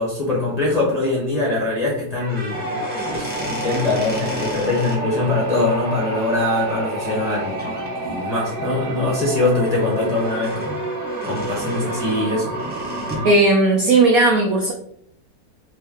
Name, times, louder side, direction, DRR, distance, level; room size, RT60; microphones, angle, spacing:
voice 1, 0.0-10.8 11.2-12.6, left 2 dB, 30° left, -5 dB, 0.7 m, -23 dB
sound 1, 2.1-5.0 7.1-7.3 7.6-7.9 8.4-13.3, equal, 10° right, 0.7 m, -33 dB
sound 2, 2.5-13.3, right 1 dB, 60° right, 1.3 m, -29 dB
voice 2, 13.2-14.7, right 2 dB, 80° right, 1 dB, 0.8 m, -15 dB
3.4 x 3.2 x 3.6 m, 0.68 s
omnidirectional pair, 2.3 m